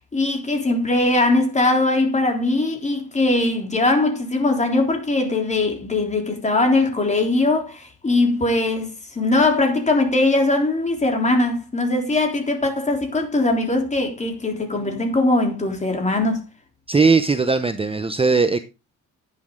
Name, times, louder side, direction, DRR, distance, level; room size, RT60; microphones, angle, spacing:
voice 1, 0.1-16.4, left 2 dB, 25° left, 3.6 m, -20 dB
voice 2, 16.9-18.6, right 4 dB, 20° right, 0.8 m, -18 dB
11.0 x 9.8 x 3.8 m
cardioid pair, 125°, 30 cm